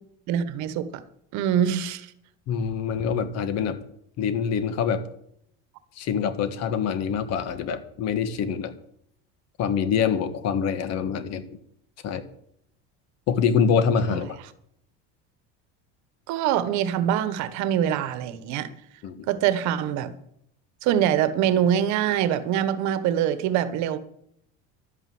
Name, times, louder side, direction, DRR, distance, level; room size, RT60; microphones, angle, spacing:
voice 1, 0.3-1.0 1.3-2.1 16.3-18.7 19.3-20.1 20.8-24.0, right 10 dB, 70° right, 1.3 m, -24 dB
voice 2, 2.5-3.8 4.2-5.0 5.9-8.7 9.6-11.6 12.0-12.2 13.3-14.4 19.0-19.3, left 7 dB, 55° left, 1.6 m, -25 dB
12.0 x 9.1 x 7.8 m
cardioid pair, 140°, 30 cm